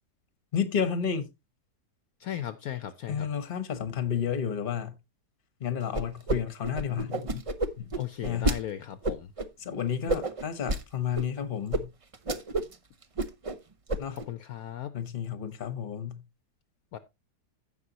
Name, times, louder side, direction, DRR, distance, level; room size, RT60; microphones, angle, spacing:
voice 1, 0.5-1.3 3.1-4.9 5.6-7.4 7.8-7.9 8.2-8.6 9.6-11.9 14.0-14.2 14.9-16.2, left 7 dB, 35° left, 1.1 m, -31 dB
voice 2, 2.2-3.3 8.0-9.3 14.1-14.9 16.9-17.0, left 11 dB, 65° left, 1.1 m, -36 dB
sound 1, 5.9-6.4 6.6-8.6 9.0-9.5 10.1-10.8 11.1-11.3 11.7-11.8 12.1-12.7 13.0-13.6 13.9-14.2, right 1 dB, 60° right, 0.3 m, -29 dB
16.0 x 5.4 x 2.8 m
omnidirectional pair, 1.8 m